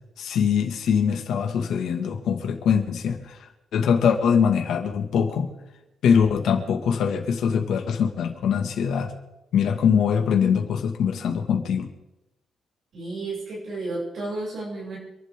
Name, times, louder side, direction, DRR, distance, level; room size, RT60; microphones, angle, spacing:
voice 1, 0.2-3.4 3.7-5.5 6.0-9.1 9.5-11.9, left 7 dB, 75° left, 4 dB, 2.1 m, -22 dB
voice 2, 12.9-15.0, right 2 dB, 55° right, -7 dB, 7.6 m, -32 dB
27.5 x 11.5 x 3.8 m, 0.95 s
wide cardioid pair, 165°, 0 cm